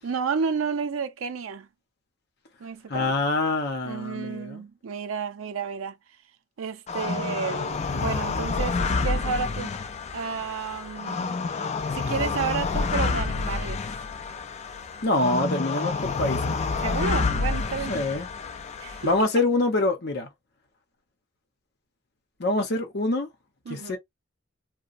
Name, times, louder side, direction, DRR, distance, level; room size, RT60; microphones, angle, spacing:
voice 1, 0.0-1.7 2.6-3.1 3.8-6.0 6.6-9.8 10.1-11.3 11.9-13.8 16.8-17.9 18.8-19.1 23.7-24.0, right 6 dB, 85° right, 0.5 m, -31 dB
voice 2, 2.9-4.6 15.0-16.6 17.9-18.3 19.0-20.3 22.4-23.3 23.7-24.0, left 2 dB, 55° left, 0.8 m, -25 dB
sound 1, 6.9-19.2, left 4 dB, 35° left, 0.3 m, -28 dB
2.9 x 2.1 x 2.5 m
head